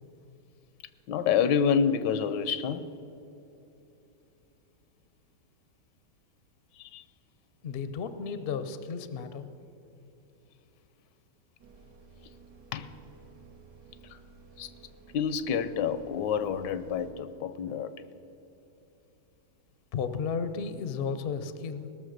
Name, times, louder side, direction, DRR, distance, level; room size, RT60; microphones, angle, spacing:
voice 1, 1.1-2.9 6.7-7.0 12.7-12.9 14.0-14.2 14.6-14.7 15.1-17.9, left 7 dB, 85° left, 1.3 m, -28 dB
voice 2, 7.6-9.5 19.9-21.9, left 5 dB, 55° left, 0.6 m, -33 dB
sound 1, 11.6-17.1, right 4 dB, 75° right, 1.9 m, -54 dB
18.5 x 6.7 x 6.5 m
omnidirectional pair, 1.8 m